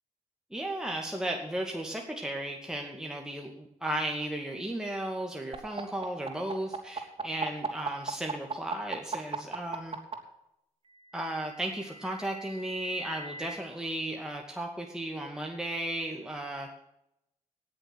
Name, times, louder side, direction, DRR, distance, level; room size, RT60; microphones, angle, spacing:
voice 1, 0.5-10.0 11.1-16.7, right 1 dB, 5° right, 0 dB, 2.2 m, -35 dB
sound 1, 5.5-10.1 11.3-13.6, right 4 dB, 45° right, 3.1 m, -37 dB
18.5 x 7.1 x 6.2 m, 0.82 s
cardioid pair, 60°, 13 cm